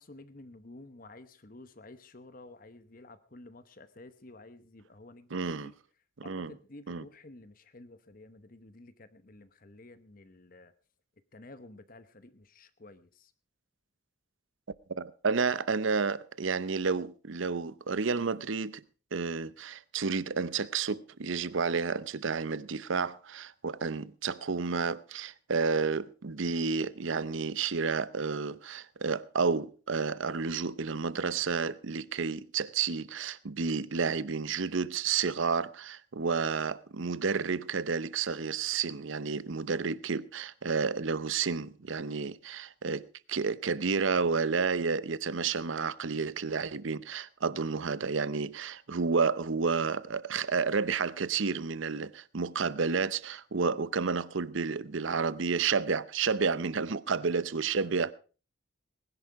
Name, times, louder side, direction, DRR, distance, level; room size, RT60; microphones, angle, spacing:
voice 1, 0.0-5.7 6.2-10.7 11.3-13.3 57.2-57.3 57.8-58.1, left 2 dB, 40° left, 1.0 m, -52 dB
voice 2, 5.3-5.7 6.2-6.5 6.9-7.0 15.0-18.8 19.1-58.1, right 5 dB, 70° right, 0.7 m, -31 dB
20.0 x 11.0 x 4.7 m
head